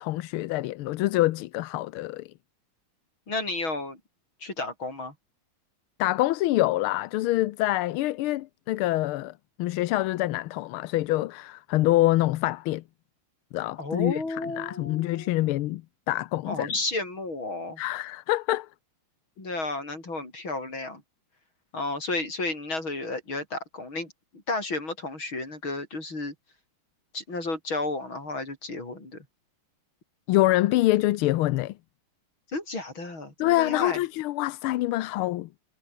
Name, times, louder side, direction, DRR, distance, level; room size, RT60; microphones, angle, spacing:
voice 1, 0.0-2.3 6.0-12.8 13.5-14.2 14.6-15.8 16.1-16.7 17.8-18.7 30.3-31.7 33.4-35.5, left 16 dB, 85° left, 1.5 m, -25 dB
voice 2, 3.3-4.0 4.4-5.1 13.8-15.6 16.5-17.8 19.4-21.0 21.7-24.1 24.5-26.3 27.1-29.2 32.5-34.0, left 2 dB, 65° left, 8.2 m, -32 dB
omnidirectional pair, 2.3 m